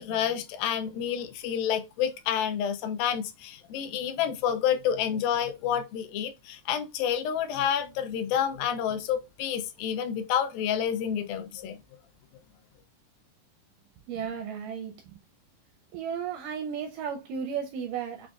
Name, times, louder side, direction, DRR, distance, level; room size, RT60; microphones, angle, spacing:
voice 1, 0.0-11.8, left 9 dB, 80° left, 2.2 m, -29 dB
voice 2, 14.1-15.2 15.9-18.3, right 7 dB, 80° right, 1.9 m, -34 dB
6.0 x 2.4 x 2.3 m
omnidirectional pair, 4.2 m